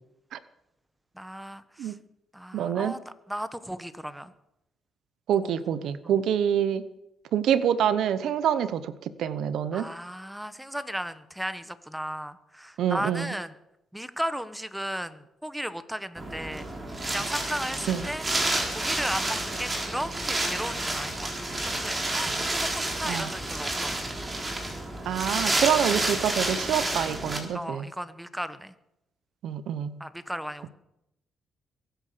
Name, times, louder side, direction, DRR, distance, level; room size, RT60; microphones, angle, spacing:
voice 1, 1.2-1.9 2.3-3.0 3.3-4.3 5.4-5.5 6.0-6.1 9.7-13.5 13.9-16.6 17.1-18.2 18.7-21.3 21.6-23.7 24.0-24.1 27.5-28.7 30.0-30.7, equal, 5° right, 13 dB, 1.2 m, -35 dB
voice 2, 2.5-3.0 5.3-6.8 7.3-9.9 12.8-13.3 17.9-18.1 23.0-23.3 25.0-27.9 29.4-30.0, right 9 dB, 75° right, 14 dB, 0.9 m, -26 dB
Wind, 16.2-27.4, right 1 dB, 20° right, 4.3 m, -30 dB
22.5 x 9.1 x 6.8 m, 0.87 s
cardioid pair, 90°, 0 cm